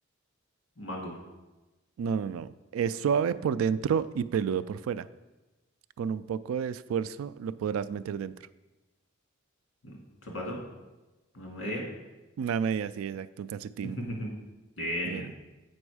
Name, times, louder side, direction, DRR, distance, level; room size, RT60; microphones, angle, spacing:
voice 1, 0.8-1.2 9.8-9.9 10.2-10.6 11.3-11.8 13.8-14.3 14.8-15.3, equal, 65° left, -1 dB, 2.1 m, -35 dB
voice 2, 2.0-5.1 6.0-8.3 12.4-14.0 15.0-15.3, right 7 dB, 90° right, 16 dB, 0.3 m, -30 dB
7.9 x 5.3 x 4.8 m, 1.1 s
head